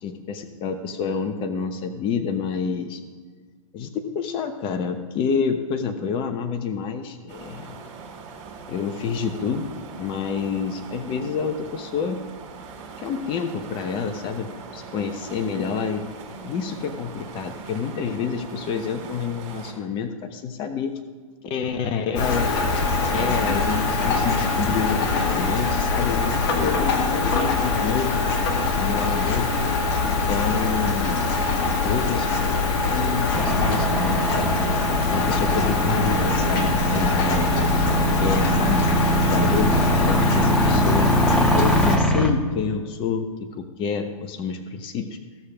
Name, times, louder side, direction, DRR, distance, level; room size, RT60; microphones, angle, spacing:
voice 1, 0.0-3.0 3.7-7.8 8.7-9.7 10.0-12.2 13.0-16.1 16.4-20.9 21.5-22.5 23.1-28.2 28.7-29.5 30.0-31.2 31.8-32.3 32.7-34.5 35.1-38.8 39.2-41.1 41.5-43.3 43.6-45.2, left 6 dB, 30° left, 7 dB, 1.0 m, -28 dB
sound 1, 7.3-19.7, right 5 dB, 40° right, 4.4 m, -41 dB
Rain, 22.2-42.0, left 3 dB, 45° left, 2.0 m, -23 dB
sound 2, 33.3-42.3, right 1 dB, 5° left, 1.0 m, -23 dB
15.5 x 6.6 x 5.9 m, 1.5 s
figure-of-eight pair, 115°, 18 cm